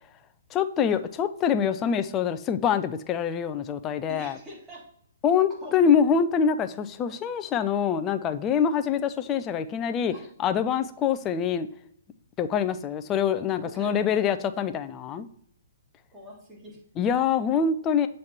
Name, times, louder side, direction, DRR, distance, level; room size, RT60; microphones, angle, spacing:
voice 1, 0.5-4.3 5.2-10.1 10.4-11.7 12.4-15.3 17.0-18.1, left 7 dB, 20° left, 10 dB, 0.4 m, -25 dB
voice 2, 4.1-4.9 5.6-5.9 10.1-10.3 13.6-14.0 16.1-16.8, equal, 15° right, -4 dB, 2.1 m, -43 dB
7.4 x 3.1 x 4.3 m, 0.66 s
figure-of-eight pair, 120°, 0 cm